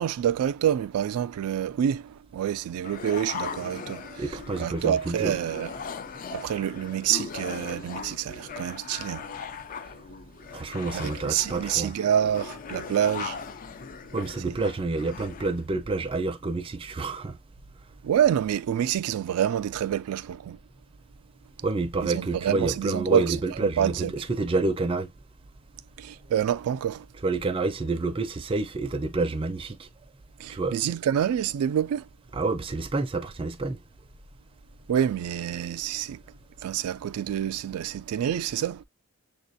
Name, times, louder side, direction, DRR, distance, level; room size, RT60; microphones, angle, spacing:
voice 1, 0.0-5.7 6.3-9.3 10.9-13.4 14.5-14.6 18.0-20.6 22.0-24.1 26.0-27.1 30.4-32.1 34.9-36.2 36.6-38.8, right 10 dB, 90° right, 0.3 m, -27 dB
sound 1, 2.8-15.6, left 6 dB, 40° left, 0.3 m, -39 dB
voice 2, 4.2-5.3 10.5-11.9 14.1-17.4 21.6-25.1 27.2-29.9 30.5-30.7 32.3-33.8, right 3 dB, 25° right, 0.4 m, -28 dB
6.8 x 2.4 x 2.6 m
head